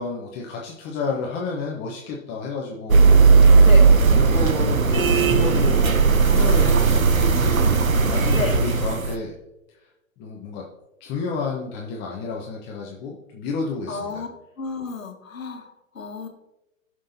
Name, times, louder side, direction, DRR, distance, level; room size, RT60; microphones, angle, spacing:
voice 1, 0.0-3.0 4.2-7.6 8.1-9.4 10.2-10.7 11.0-14.2, left 4 dB, 25° left, -2 dB, 1.2 m, -30 dB
sound 1, 2.9-9.2, right 4 dB, 90° right, 0.9 m, -16 dB
voice 2, 13.9-14.3 14.6-16.3, left 5 dB, 75° left, 4 dB, 1.7 m, -31 dB
16.5 x 6.4 x 2.8 m, 0.97 s
figure-of-eight pair, 115°, 40 cm